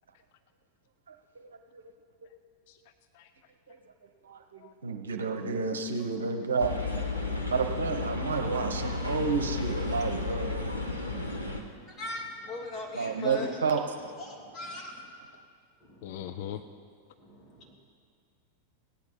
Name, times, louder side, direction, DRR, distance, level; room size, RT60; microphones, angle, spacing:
voice 1, 1.4-1.8 3.7-3.8 4.2-7.0 7.5-10.7 12.9-13.8, right 5 dB, 70° right, 5 dB, 1.0 m, -31 dB
sound 1, 6.6-11.6, left 3 dB, 85° left, 1.4 m, -33 dB
voice 2, 12.0-13.5 14.2-14.9 16.0-16.5 17.2-17.7, left 2 dB, 25° left, -2 dB, 2.6 m, -40 dB
voice 3, 16.0-16.6, left 11 dB, 50° left, 9 dB, 0.5 m, -40 dB
16.5 x 9.4 x 5.7 m, 2.1 s
figure-of-eight pair, 90°, 0 cm